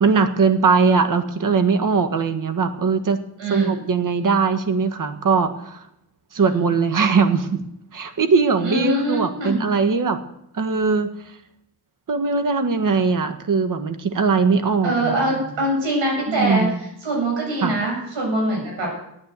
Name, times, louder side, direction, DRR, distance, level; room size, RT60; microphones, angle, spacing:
voice 1, 0.0-3.2 3.5-5.8 6.3-7.6 7.9-10.2 10.5-11.1 12.1-15.1 16.3-16.8 17.6-17.8, right 5 dB, 45° right, 9 dB, 1.5 m, -20 dB
voice 2, 3.4-3.8 6.4-6.7 8.6-9.6 14.8-16.7 17.0-18.9, right 1 dB, 85° right, -1 dB, 7.5 m, -23 dB
12.0 x 9.2 x 8.2 m, 0.79 s
cardioid pair, 90°, 43 cm